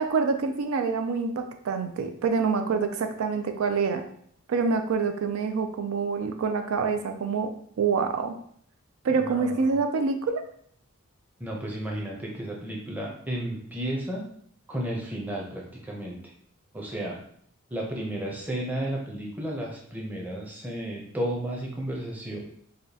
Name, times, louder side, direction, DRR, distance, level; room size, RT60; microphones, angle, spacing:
voice 1, 0.0-4.0 4.5-7.5 7.8-8.4 9.0-10.4, right 5 dB, 75° right, 6 dB, 0.4 m, -26 dB
voice 2, 9.2-9.8 11.4-14.2 14.7-16.2 16.7-17.2 17.7-22.4, right 1 dB, 10° right, -2 dB, 0.7 m, -33 dB
4.9 x 2.2 x 2.8 m, 0.65 s
head